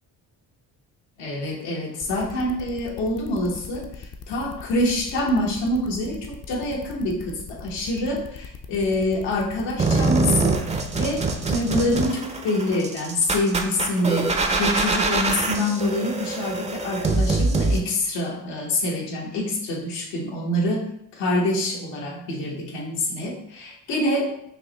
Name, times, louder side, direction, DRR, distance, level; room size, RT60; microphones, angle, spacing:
voice 1, 1.2-10.6 11.0-20.8 21.2-24.3, left 1 dB, 80° left, -1 dB, 1.1 m, -26 dB
sound 1, 2.0-12.0, left 6 dB, 40° left, 0.5 m, -40 dB
sound 2, 9.8-17.8, right 3 dB, 15° right, 0.4 m, -24 dB
5.6 x 2.1 x 2.9 m, 0.77 s
supercardioid pair, 70°, 42 cm